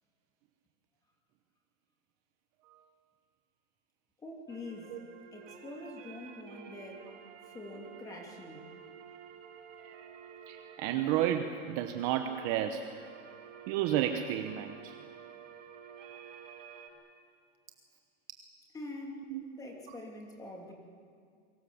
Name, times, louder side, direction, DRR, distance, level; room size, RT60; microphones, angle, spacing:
voice 1, 4.2-4.9 5.3-7.1 7.4-8.6 18.7-19.3 19.5-20.7, left 2 dB, 10° left, 1 dB, 2.8 m, -45 dB
sound 1, 4.5-16.9, right 7 dB, 75° right, 5.3 m, -51 dB
voice 2, 10.5-12.9 13.7-15.0 19.3-19.4 19.9-20.0, right 11 dB, 30° right, 7 dB, 1.0 m, -32 dB
29.5 x 24.0 x 7.2 m, 2.2 s
supercardioid pair, 170°, 37 cm